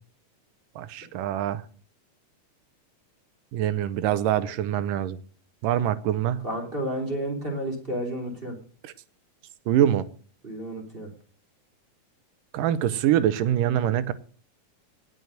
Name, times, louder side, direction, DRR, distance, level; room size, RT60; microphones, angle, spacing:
voice 1, 0.8-1.6 3.5-5.2 5.6-6.4 8.8-8.9 9.7-10.0 12.5-14.1, right 11 dB, 85° right, 15 dB, 2.4 m, -24 dB
voice 2, 6.4-8.5 10.4-11.1, right 1 dB, 15° right, 1 dB, 3.2 m, -31 dB
18.5 x 6.4 x 6.5 m, 0.42 s
omnidirectional pair, 3.8 m